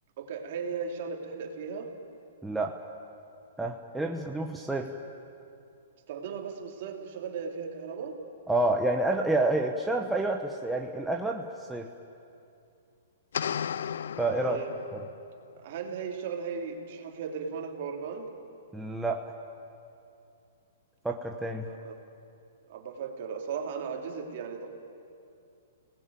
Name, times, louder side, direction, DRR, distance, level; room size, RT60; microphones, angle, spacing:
voice 1, 0.2-1.9 6.1-8.2 14.4-14.7 15.6-18.3 21.6-21.9 22.7-24.7, right 6 dB, 45° right, 2 dB, 3.1 m, -36 dB
voice 2, 2.4-2.8 3.6-4.9 8.5-11.9 14.2-14.6 18.7-19.3 21.0-21.7, right 2 dB, 5° right, 1 dB, 0.9 m, -29 dB
sound 1, 13.3-15.3, left 8 dB, 70° left, 0.5 m, -34 dB
29.5 x 19.5 x 9.2 m, 2.6 s
hypercardioid pair, 165°, 0 cm